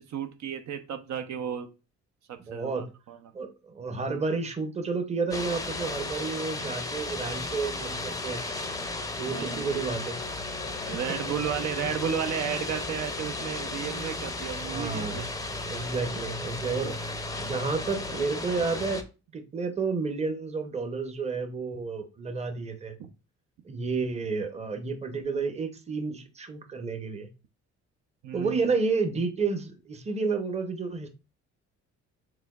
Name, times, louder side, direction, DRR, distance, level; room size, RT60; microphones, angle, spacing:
voice 1, 0.0-1.7 2.3-3.2 9.3-9.7 10.8-15.2 23.0-23.1 28.2-28.7, right 8 dB, 70° right, 7 dB, 0.6 m, -33 dB
voice 2, 2.4-2.9 3.3-8.4 9.2-10.2 14.7-15.3 15.7-16.9 17.4-19.0 19.3-22.9 23.6-27.3 28.3-31.1, right 4 dB, 20° right, 7 dB, 0.7 m, -31 dB
sound 1, 5.3-19.0, left 2 dB, 10° left, 0.5 m, -34 dB
4.9 x 3.5 x 2.3 m, 0.31 s
cardioid pair, 90°, 30 cm